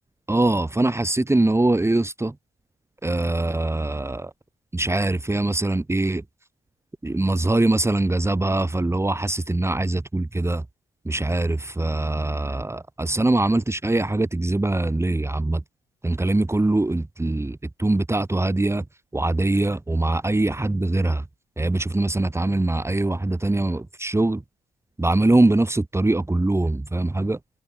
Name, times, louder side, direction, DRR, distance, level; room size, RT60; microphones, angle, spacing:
voice 1, 0.3-2.3 3.0-4.3 4.7-6.2 7.0-10.6 11.1-15.6 16.0-18.8 19.1-21.2 21.6-24.4 25.0-27.4, right 2 dB, 15° right, 3.0 m, -22 dB
cardioid pair, 90°, 20 cm